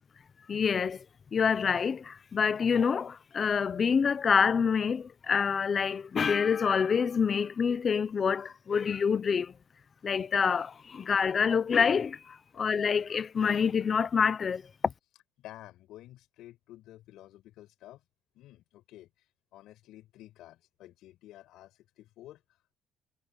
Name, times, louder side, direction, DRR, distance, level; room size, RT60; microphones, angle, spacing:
voice 1, 0.5-1.0 1.3-9.5 10.0-14.6, left 6 dB, 30° left, 0.8 m, -27 dB
voice 2, 15.4-18.0 18.3-22.4, left 14 dB, 75° left, 7.2 m, -51 dB
cardioid pair, 160°, 0 cm